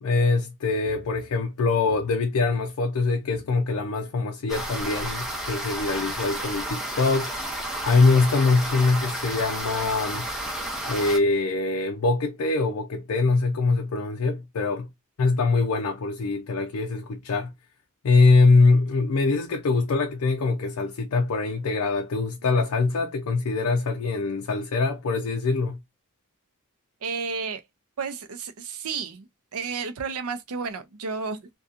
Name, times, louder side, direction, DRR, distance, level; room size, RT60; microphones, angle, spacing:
voice 1, 0.0-7.3 7.9-10.3 10.9-14.9 15.2-17.5 18.0-25.8, left 3 dB, 75° left, 0.4 m, -23 dB
sound 1, 4.5-11.2, right 1 dB, 5° right, 0.7 m, -32 dB
voice 2, 27.0-27.6 28.0-31.5, right 5 dB, 80° right, 0.5 m, -32 dB
2.7 x 2.3 x 2.3 m
head